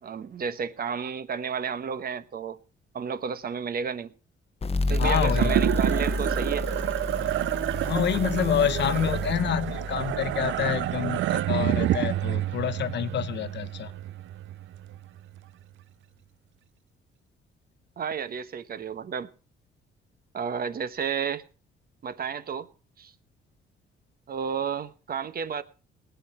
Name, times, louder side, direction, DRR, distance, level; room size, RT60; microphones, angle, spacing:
voice 1, 0.0-2.6 2.9-4.1 4.9-6.7 18.0-19.3 20.3-21.4 22.0-22.7 23.0-23.1 24.3-25.6, right 7 dB, 50° right, 1.1 m, -32 dB
sound 1, 4.6-11.9, left 2 dB, 30° left, 0.9 m, -31 dB
sound 2, 4.9-15.4, right 13 dB, 75° right, 0.5 m, -29 dB
voice 2, 5.0-5.6 7.9-13.9, left 9 dB, 60° left, 1.0 m, -27 dB
19.5 x 8.1 x 4.4 m
cardioid pair, 90°, 20 cm